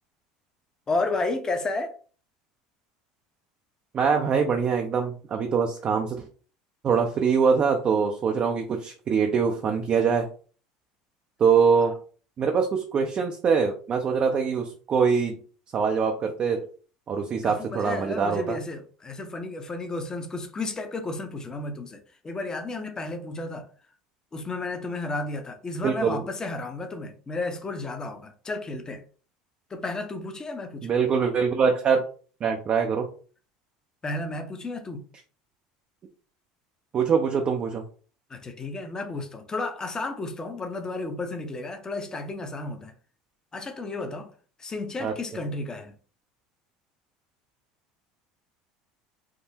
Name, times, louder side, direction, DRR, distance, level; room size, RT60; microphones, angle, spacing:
voice 1, 0.9-2.0 17.4-23.7 24.3-29.0 29.7-30.9 34.0-35.1 38.3-42.9 43.5-44.3 44.6-45.9, left 2 dB, 25° left, 0.7 m, -32 dB
voice 2, 3.9-6.2 6.8-10.3 11.4-12.0 12.4-15.4 15.7-16.6 17.1-18.6 25.8-26.2 30.8-32.0 32.4-33.1 36.9-37.8 45.0-45.1, right 6 dB, 40° right, 0.5 m, -23 dB
3.6 x 2.1 x 2.7 m
hypercardioid pair, 85°, 3 cm